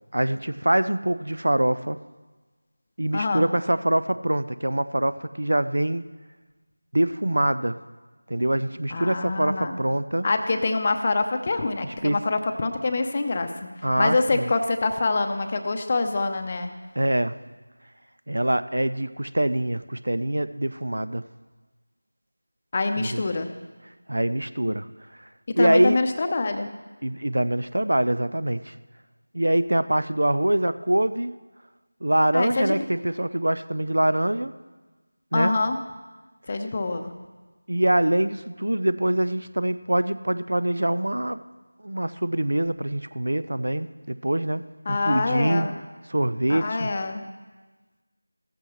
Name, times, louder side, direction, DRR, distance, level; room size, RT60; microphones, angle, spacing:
voice 1, 0.1-2.0 3.0-6.0 6.9-7.8 8.3-10.3 12.0-12.2 13.8-14.5 17.0-17.4 18.3-21.2 23.0-23.2 24.1-24.9 25.6-26.0 27.0-28.7 29.3-31.3 32.0-34.5 35.3-35.5 37.7-41.4 41.8-45.7 46.1-46.9, right 1 dB, 70° right, 14 dB, 0.5 m, -24 dB
voice 2, 3.1-3.5 8.9-9.7 10.2-16.7 22.7-23.5 25.5-26.7 32.3-32.8 35.3-35.8 36.5-37.1 44.9-45.7 46.5-47.3, left 3 dB, 25° left, 7 dB, 0.7 m, -25 dB
15.5 x 14.0 x 3.1 m, 1.3 s
figure-of-eight pair, 170°, 0 cm